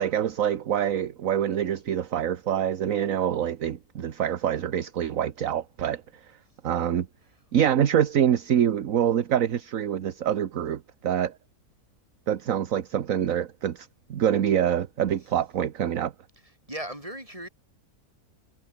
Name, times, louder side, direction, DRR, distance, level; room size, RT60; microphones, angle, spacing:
voice 1, 0.0-6.0 6.6-7.1 7.5-11.3 12.3-16.1, right 9 dB, 60° right, 1.4 m, -25 dB
voice 2, 16.7-17.5, right 1 dB, 20° right, 7.8 m, -36 dB
omnidirectional pair, 1.7 m